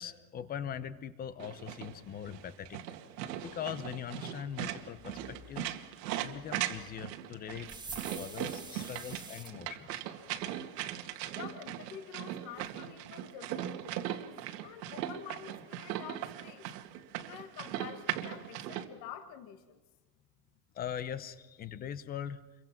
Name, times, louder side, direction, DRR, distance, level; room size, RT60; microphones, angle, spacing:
voice 1, 0.0-3.0 3.4-5.7 6.2-7.7 8.1-10.1 20.7-22.4, left 9 dB, 20° left, 14 dB, 0.9 m, -41 dB
sound 1, 1.4-18.8, right 12 dB, 75° right, 2.2 m, -39 dB
sound 2, 7.7-9.5, right 4 dB, 10° right, 1.5 m, -45 dB
voice 2, 11.3-14.3 14.6-16.7 17.3-19.8, left 9 dB, 35° left, 7 dB, 1.6 m, -48 dB
29.0 x 23.5 x 6.0 m, 1.2 s
supercardioid pair, 165°, 49 cm